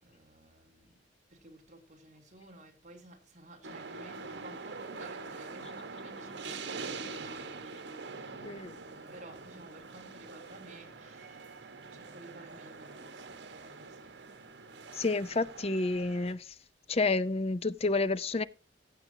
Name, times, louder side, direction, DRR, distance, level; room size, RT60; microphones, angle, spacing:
voice 1, 0.0-1.0 1.3-7.6 9.1-14.2, right 1 dB, 40° right, 2.9 m, -54 dB
sound 1, 3.6-16.3, right 4 dB, 80° right, 1.4 m, -44 dB
voice 2, 8.4-8.8 14.9-16.5 16.9-18.4, left 3 dB, 35° left, 0.6 m, -30 dB
15.0 x 8.5 x 2.8 m
head